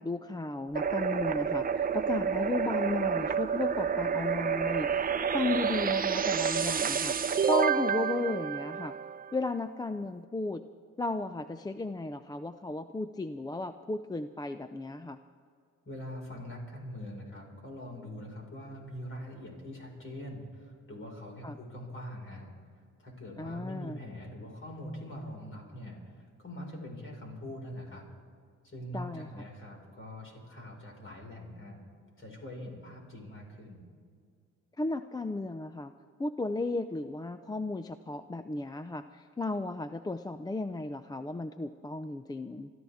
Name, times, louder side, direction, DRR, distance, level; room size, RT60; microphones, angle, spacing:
voice 1, 0.0-7.2 7.4-8.9 9.3-10.6 11.0-15.2 21.4-21.6 23.4-24.0 28.9-29.3 34.8-35.9 36.2-42.7, left 2 dB, 15° left, 10 dB, 0.5 m, -34 dB
sound 1, 0.7-9.4, right 6 dB, 30° right, 0.7 m, -29 dB
voice 2, 15.8-22.5 23.0-28.1 28.6-31.8 32.2-33.8, left 1 dB, 45° left, 0 dB, 5.0 m, -43 dB
29.0 x 13.0 x 3.6 m, 2.1 s
cardioid pair, 90°, 30 cm